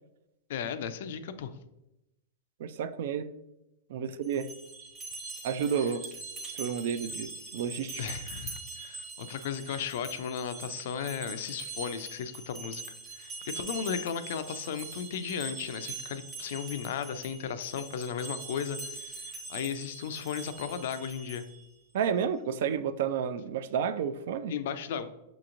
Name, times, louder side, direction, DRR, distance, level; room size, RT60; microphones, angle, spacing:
voice 1, 0.5-1.5 8.0-12.8 13.2-21.4 24.5-25.1, left 7 dB, 65° left, 11 dB, 0.4 m, -35 dB
voice 2, 2.6-3.3 3.9-4.5 5.4-6.0 6.5-8.0 21.9-24.5, right 7 dB, 65° right, 13 dB, 0.3 m, -31 dB
sound 1, 4.2-21.7, right 3 dB, 20° right, 0.8 m, -43 dB
6.1 x 2.9 x 2.5 m, 0.92 s
hypercardioid pair, 145°, 0 cm